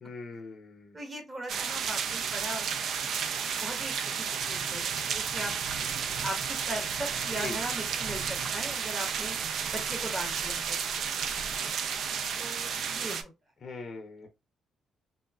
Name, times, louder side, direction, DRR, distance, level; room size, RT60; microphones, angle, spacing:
voice 1, 0.0-1.0 7.3-7.6 13.6-14.3, left 4 dB, 45° left, 0.6 m, -41 dB
voice 2, 0.9-2.6 3.6-5.5 6.2-9.4 9.7-10.8 12.4-13.3, right 1 dB, 30° right, 1.2 m, -39 dB
sound 1, 1.5-13.2, right 7 dB, 70° right, 0.4 m, -32 dB
3.0 x 2.5 x 2.3 m
cardioid pair, 90°, 0 cm